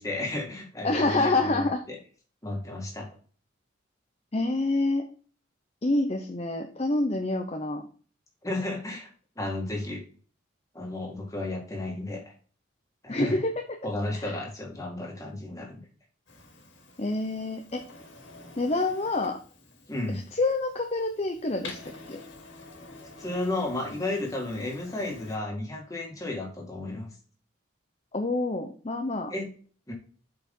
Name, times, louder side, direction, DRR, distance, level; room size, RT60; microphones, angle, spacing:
voice 1, 0.0-2.0 2.4-3.1 8.4-9.1 9.4-10.0 10.7-12.2 13.0-13.4 13.8-15.9 19.9-20.2 23.2-27.1 29.3-29.5 29.9-30.0, left 2 dB, 15° left, 0 dB, 2.1 m, -33 dB
voice 2, 0.8-1.8 4.3-5.1 5.8-7.8 13.1-13.8 14.1-14.4 17.0-17.8 18.6-19.4 20.1-21.8 22.1-22.2 28.1-29.3, left 2 dB, 30° left, 4 dB, 0.7 m, -27 dB
Printer, 16.3-25.4, left 3 dB, 65° left, 2.3 m, -48 dB
8.1 x 4.9 x 3.7 m, 0.41 s
head